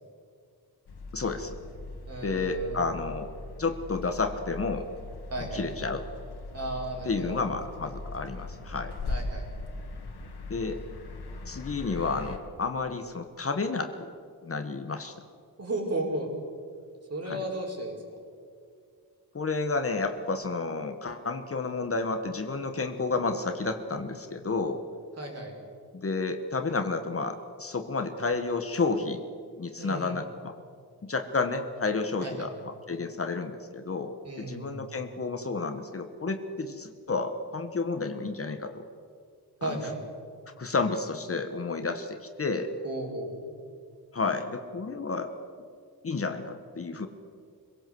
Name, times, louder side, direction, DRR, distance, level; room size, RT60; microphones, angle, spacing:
sound 1, 0.9-12.4, left 2 dB, 90° left, 2.4 m, -40 dB
voice 1, 1.1-1.5 2.2-3.3 3.6-4.9 5.4-6.0 7.0-8.9 10.5-10.8 11.5-14.1 14.4-15.1 17.3-17.4 19.3-24.8 25.9-29.2 29.6-30.6 31.0-38.8 39.6-39.8 40.6-42.7 44.1-45.3 46.0-47.1, left 3 dB, 35° left, 7 dB, 1.3 m, -31 dB
voice 2, 2.1-2.8 5.3-5.6 6.5-7.4 9.1-9.5 15.6-16.3 17.1-18.0 25.2-25.5 29.8-30.2 32.2-32.5 34.2-34.8 39.6-40.0 42.8-43.5, right 1 dB, 40° right, 1 dB, 5.0 m, -34 dB
25.0 x 17.5 x 7.8 m, 2.3 s
wide cardioid pair, 125°, 39 cm